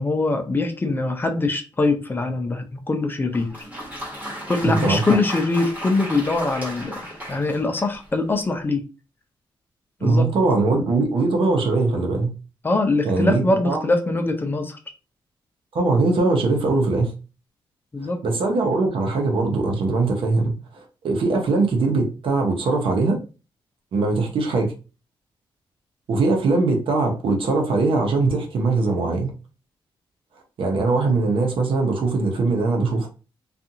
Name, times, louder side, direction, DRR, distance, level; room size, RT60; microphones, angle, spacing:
voice 1, 0.0-3.5 4.5-7.0 7.3-8.8 10.0-10.3 12.6-14.8 17.9-18.2, left 2 dB, 20° left, 5 dB, 0.4 m, -23 dB
Applause, 3.3-8.2, equal, 15° right, 1.2 m, -35 dB
voice 2, 4.6-5.2 10.0-12.3 13.0-13.9 15.7-17.1 18.2-23.2 23.9-24.7 26.1-29.3 30.6-33.1, right 3 dB, 70° right, 2 dB, 0.8 m, -21 dB
2.5 x 2.4 x 2.7 m, 0.33 s
cardioid pair, 120°, 9 cm